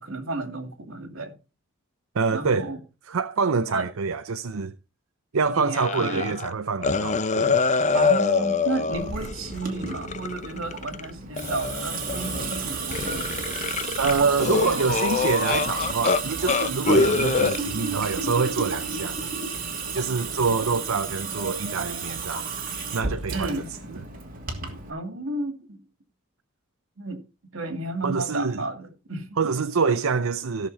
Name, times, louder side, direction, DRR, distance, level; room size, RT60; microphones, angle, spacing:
voice 1, 0.0-1.3 2.3-2.8 3.7-3.9 5.5-6.4 7.9-13.7 14.4-14.9 23.3-24.0 24.9-25.8 27.0-27.2 27.5-29.5, right 2 dB, 70° right, 2.5 m, -32 dB
voice 2, 2.1-2.7 3.1-4.7 5.3-7.6 14.0-19.2 19.9-22.5 22.9-23.5 28.0-28.7 29.4-30.7, right 5 dB, 85° right, 0.6 m, -26 dB
sound 1, 5.7-6.5 6.8-11.0 11.4-12.6 12.9-16.2 16.5-17.6, left 4 dB, 35° left, 0.7 m, -25 dB
Water tap faucet / Sink (filling or washing) / Drip, 8.9-24.9, right 4 dB, 40° right, 2.7 m, -32 dB
16.0 x 6.7 x 4.2 m
head